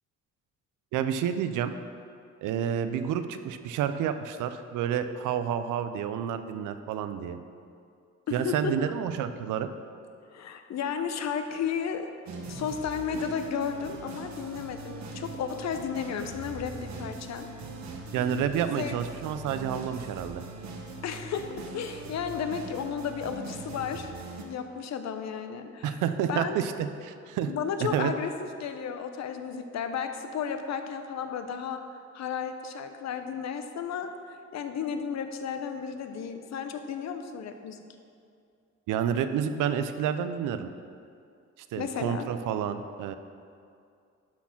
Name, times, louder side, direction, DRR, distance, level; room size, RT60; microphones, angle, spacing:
voice 1, 0.9-1.7 2.4-7.4 8.3-9.7 18.1-20.4 25.8-27.5 27.8-28.1 38.9-40.7 41.7-43.1, right 8 dB, 85° right, 10 dB, 0.6 m, -29 dB
voice 2, 8.3-8.7 10.3-12.1 12.5-16.7 17.0-17.5 18.8-18.9 21.0-24.1 24.4-26.0 26.3-26.6 27.5-28.3 28.6-31.8 32.1-34.1 34.5-37.8 41.8-42.3, left 7 dB, 60° left, 7 dB, 0.8 m, -33 dB
sound 1, 12.3-24.4, right 3 dB, 65° right, 1.2 m, -41 dB
11.5 x 4.3 x 5.9 m, 2.4 s
cardioid pair, 90°, 30 cm